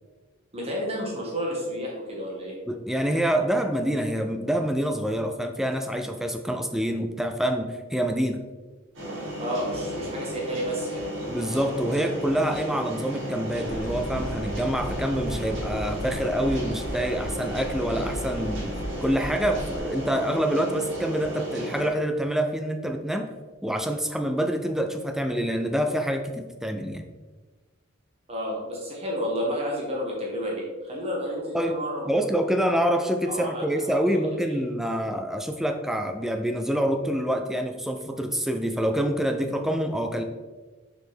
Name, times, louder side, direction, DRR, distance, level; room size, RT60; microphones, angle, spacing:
voice 1, 0.5-2.5 9.4-11.1 28.3-32.1 33.3-34.0, equal, 30° right, -3 dB, 1.2 m, -31 dB
voice 2, 2.7-8.4 11.3-18.7 19.0-23.3 23.6-27.0 31.5-31.8 32.1-40.2, equal, ahead, 5 dB, 0.3 m, -26 dB
sound 1, 8.9-21.9, right 1 dB, 65° right, 1.7 m, -34 dB
sound 2, 13.6-19.8, equal, 65° left, 1.2 m, -35 dB
6.7 x 4.1 x 3.5 m, 1.3 s
head